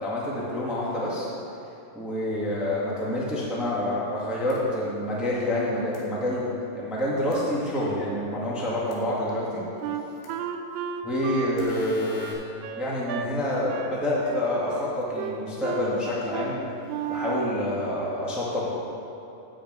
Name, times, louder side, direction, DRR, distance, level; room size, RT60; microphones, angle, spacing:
voice 1, 0.0-1.3 1.9-6.5 6.7-9.7 11.0-12.3 12.8-16.6 17.1-18.6, left 1 dB, ahead, -6 dB, 0.5 m, -27 dB
sound 1, 4.5-4.6 5.9-6.0 7.3-7.4 8.9-9.0 10.2-10.3 11.6-12.3, left 3 dB, 80° left, 3.2 m, -44 dB
Wind instrument woodwind instrument, 9.8-13.3 13.7-14.0 14.2-14.9 15.2-15.9 16.3-16.5 16.9-17.6, right 8 dB, 80° right, 2.2 m, -33 dB
8.4 x 6.6 x 8.2 m, 2.9 s
omnidirectional pair, 4.1 m